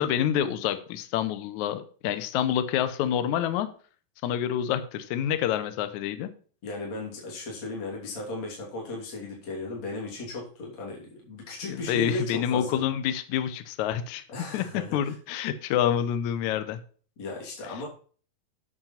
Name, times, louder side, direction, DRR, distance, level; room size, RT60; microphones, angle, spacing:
voice 1, 0.0-3.7 4.2-6.3 11.7-14.2 14.5-14.6 14.9-16.8, left 10 dB, 75° left, 11 dB, 1.8 m, -27 dB
voice 2, 6.6-12.8 14.3-15.2 17.2-17.9, left 2 dB, 45° left, -3 dB, 4.0 m, -36 dB
8.9 x 6.5 x 5.8 m, 0.42 s
omnidirectional pair, 4.2 m